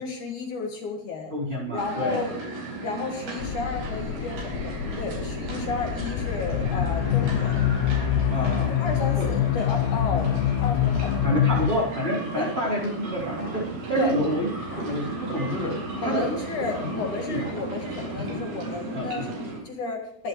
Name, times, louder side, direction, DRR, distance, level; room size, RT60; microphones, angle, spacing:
voice 1, 0.0-1.3 1.7-2.3 2.8-7.6 8.8-11.7 12.3-12.5 14.0-14.1 15.9-20.3, left 4 dB, 65° left, 2 dB, 3.2 m, -33 dB
voice 2, 1.3-2.2 8.3-8.7 9.2-9.3 11.2-14.5 14.7-16.2 17.3-17.4 18.9-19.3, equal, 15° right, -6 dB, 4.4 m, -28 dB
sound 1, 1.8-19.6, right 3 dB, 90° right, 5.9 m, -36 dB
sound 2, 3.4-11.7, left 10 dB, 80° left, 1.5 m, -25 dB
sound 3, 13.1-18.4, left 2 dB, 35° left, 1.8 m, -38 dB
23.0 x 10.5 x 3.2 m, 0.70 s
omnidirectional pair, 4.0 m